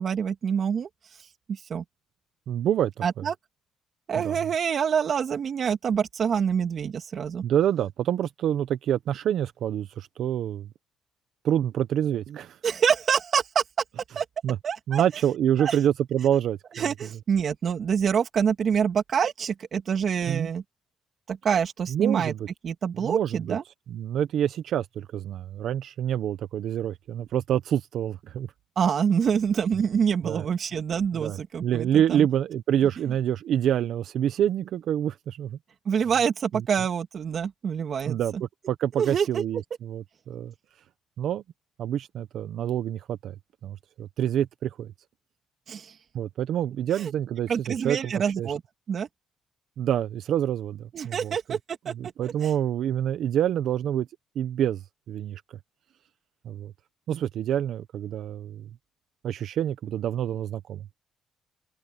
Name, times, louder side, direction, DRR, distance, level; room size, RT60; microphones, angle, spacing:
voice 1, 0.0-1.8 3.0-3.3 4.1-7.4 12.6-13.6 14.2-14.3 14.6-15.0 15.6-15.8 16.7-20.6 21.3-22.3 22.6-23.6 28.8-32.3 35.9-38.2 39.0-39.4 45.7-46.0 47.0-47.1 47.5-48.6 48.9-49.1 50.9-51.9 52.2-52.5, right 7 dB, 55° right, 2.5 m, -26 dB
voice 2, 2.5-2.9 3.2-3.3 4.2-4.4 7.4-10.7 11.4-12.6 14.4-14.6 14.9-16.8 20.3-20.5 21.9-22.4 22.9-23.6 23.9-28.5 30.2-30.5 31.1-35.6 38.1-40.5 41.2-41.4 41.8-43.3 43.6-44.9 46.1-48.5 49.8-51.6 51.9-54.1 54.3-54.8 55.1-55.6 56.4-56.7 57.1-58.7 59.2-60.9, right 10 dB, 75° right, 0.9 m, -27 dB
cardioid pair, 90°, 0 cm